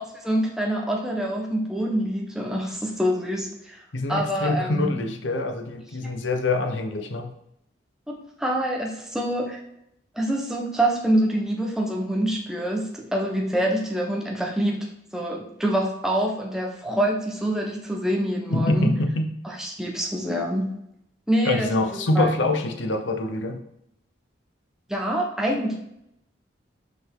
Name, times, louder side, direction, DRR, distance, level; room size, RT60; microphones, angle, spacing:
voice 1, 0.0-3.8 4.1-4.9 8.1-9.6 10.1-18.9 19.4-20.7 21.3-22.3 24.9-25.8, right 1 dB, 5° right, -1 dB, 1.0 m, -26 dB
voice 2, 3.9-7.3 18.5-19.3 21.4-23.6, left 2 dB, 85° left, 6 dB, 0.9 m, -25 dB
6.1 x 5.1 x 3.8 m, 0.78 s
head